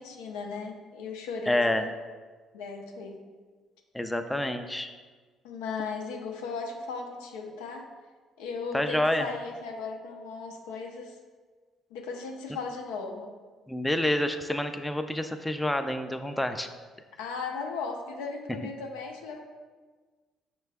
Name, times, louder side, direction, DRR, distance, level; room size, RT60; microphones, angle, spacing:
voice 1, 0.0-1.9 2.5-3.2 5.4-7.9 8.4-11.2 11.9-13.3 17.2-19.4, left 4 dB, 90° left, 2 dB, 0.5 m, -37 dB
voice 2, 1.5-1.8 3.9-4.9 8.7-9.3 13.7-16.7, left 1 dB, 10° left, 7 dB, 0.3 m, -28 dB
5.6 x 2.2 x 3.4 m, 1.4 s
supercardioid pair, 70°, 0 cm